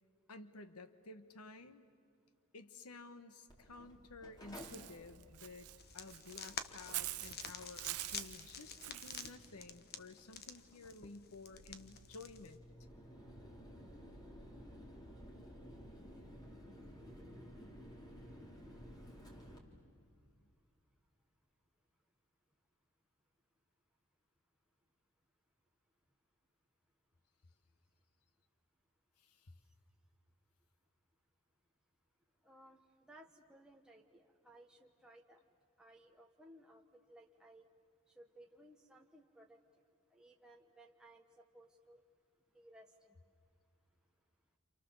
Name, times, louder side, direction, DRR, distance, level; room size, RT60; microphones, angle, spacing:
voice 1, 0.3-1.9 2.5-5.7 5.9-12.6 15.6-15.8 17.6-17.8 20.3-20.5 29.2-29.6, left 3 dB, 90° left, 10 dB, 1.2 m, -54 dB
Mechanical fan, 3.5-19.6, equal, 20° left, 3.5 m, -56 dB
Walk footsteps / Bird, 4.5-9.3, right 17 dB, 85° right, 0.6 m, -46 dB
sound 1, 5.8-12.6, left 6 dB, 45° left, 1.3 m, -49 dB
voice 2, 32.4-35.4 35.8-36.8 37.1-37.7 38.2-39.6 40.1-42.0 42.5-43.2, right 1 dB, 5° right, 0 dB, 1.2 m, -61 dB
29.5 x 28.0 x 7.1 m, 2.3 s
head